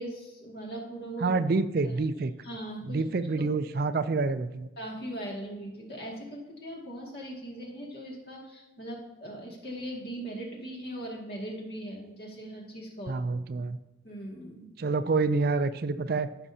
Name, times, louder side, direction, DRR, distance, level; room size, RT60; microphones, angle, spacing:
voice 1, 0.0-1.4 2.4-3.0 3.4-3.5 4.8-13.2 14.0-14.7, right 1 dB, 55° left, -1 dB, 2.2 m, -39 dB
voice 2, 1.2-2.3 2.8-4.7 13.1-13.8 14.8-16.3, right 3 dB, 50° right, 12 dB, 0.4 m, -27 dB
14.0 x 6.0 x 2.8 m, 1.0 s
head